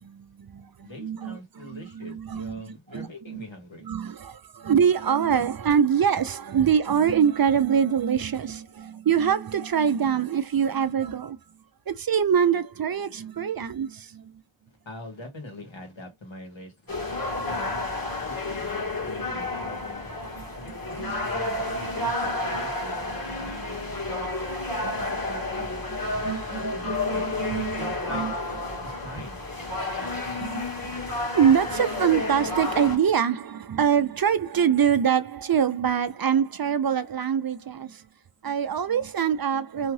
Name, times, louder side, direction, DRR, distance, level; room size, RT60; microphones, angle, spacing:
voice 1, 0.0-3.4 3.8-11.4 11.9-14.4 17.3-17.5 20.4-21.3 23.4-23.6 24.7-25.0 26.2-28.3 30.4-38.0 38.4-39.9, right 8 dB, 50° right, 0.5 m, -25 dB
voice 2, 0.8-3.9 14.8-17.0 17.5-17.8 18.1-20.1 20.5-23.8 24.1-24.3 25.0-27.2 27.8-28.2 28.8-30.1, left 2 dB, 75° left, 1.4 m, -43 dB
sound 1, 16.9-33.0, left 2 dB, 45° left, 1.4 m, -31 dB
2.8 x 2.4 x 3.1 m
wide cardioid pair, 45°, 46 cm